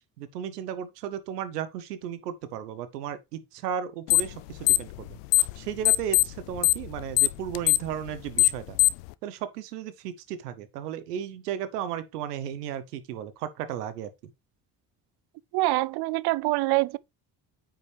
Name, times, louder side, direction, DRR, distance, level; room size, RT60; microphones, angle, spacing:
voice 1, 0.2-5.2 5.6-8.8 9.2-14.1, right 9 dB, 90° right, 0.9 m, -35 dB
sound 1, 4.1-4.4 4.6-5.6 5.8-9.1, left 21 dB, 85° left, 0.5 m, -21 dB
voice 2, 15.5-17.0, right 20 dB, 55° right, 0.5 m, -25 dB
8.9 x 5.7 x 3.3 m
hypercardioid pair, 55°, 46 cm